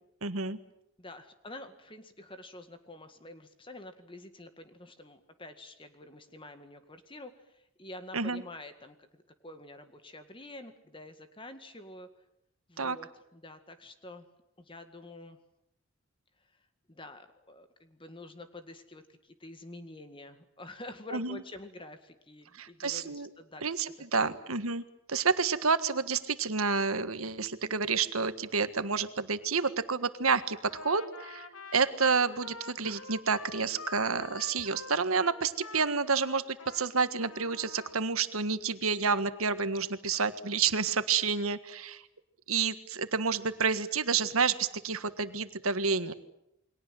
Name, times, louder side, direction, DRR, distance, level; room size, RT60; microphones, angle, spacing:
voice 1, 0.2-0.6 8.1-8.4 12.8-13.0 21.1-21.4 22.6-23.3 23.6-24.8 25.1-31.4 31.7-42.0 42.5-46.1, right 5 dB, 85° right, 11 dB, 1.6 m, -29 dB
voice 2, 1.0-12.1 12.7-14.3 14.6-15.4 16.9-23.6 24.1-24.3, left 1 dB, 25° left, 8 dB, 1.9 m, -48 dB
Trumpet, 30.7-36.9 37.2-38.0, left 4 dB, 80° left, 2.5 m, -46 dB
29.0 x 22.5 x 7.8 m, 0.82 s
head